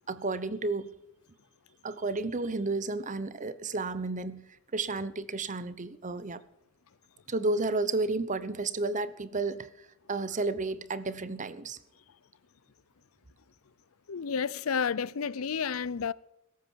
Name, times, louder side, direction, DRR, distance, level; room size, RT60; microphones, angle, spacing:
voice 1, 0.1-0.9 1.8-4.5 4.7-6.4 7.3-9.7 10.1-11.8, right 3 dB, 35° right, 0.9 m, -32 dB
voice 2, 14.1-16.1, left 6 dB, 80° left, 0.6 m, -31 dB
17.0 x 14.0 x 4.6 m
head